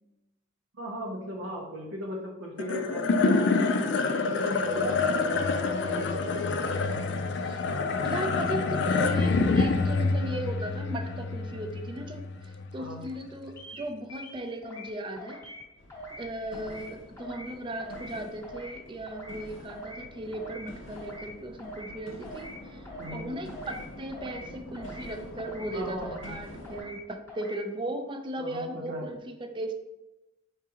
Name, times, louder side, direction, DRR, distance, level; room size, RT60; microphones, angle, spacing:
voice 1, 0.7-3.6 4.1-7.1 12.8-13.1 23.0-23.3 25.7-26.3 28.4-29.1, equal, 85° right, -2 dB, 0.7 m, -38 dB
sound 1, 2.6-13.1, left 4 dB, 60° left, 0.3 m, -27 dB
voice 2, 8.0-15.4 16.2-22.9 23.1-29.7, right 1 dB, 25° right, 5 dB, 0.4 m, -37 dB
sound 2, 13.6-13.8 14.1-14.9 15.2-15.6 15.9-16.3 16.5-16.9 17.2-17.5 17.8-18.1 18.4-18.8 19.1-19.4 19.7-20.0 20.3-20.7 20.9-21.3 21.6-21.9 22.2-22.6 22.8-23.2 23.5-23.8 24.1-24.5 24.7-25.1 25.4-25.7 26.0-26.4 26.6-27.0 27.3-27.6, right 1 dB, 15° left, 1.0 m, -43 dB
sound 3, 15.8-26.8, left 1 dB, 85° left, 0.8 m, -46 dB
4.8 x 3.6 x 2.8 m, 0.99 s
head